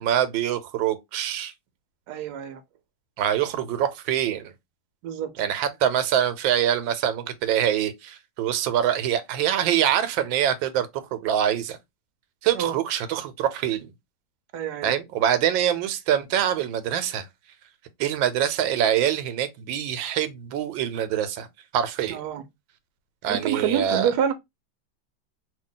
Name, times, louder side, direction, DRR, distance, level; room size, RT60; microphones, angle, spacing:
voice 1, 0.0-1.5 3.2-4.5 5.4-11.8 12.4-13.9 14.8-17.2 18.0-21.5 21.7-22.2 23.2-24.1, right 10 dB, 90° right, 1.3 m, -24 dB
voice 2, 2.1-2.6 5.0-5.3 12.5-12.8 14.5-14.9 22.1-22.4 23.3-24.3, right 9 dB, 70° right, 1.0 m, -27 dB
2.8 x 2.7 x 3.7 m
omnidirectional pair, 2.0 m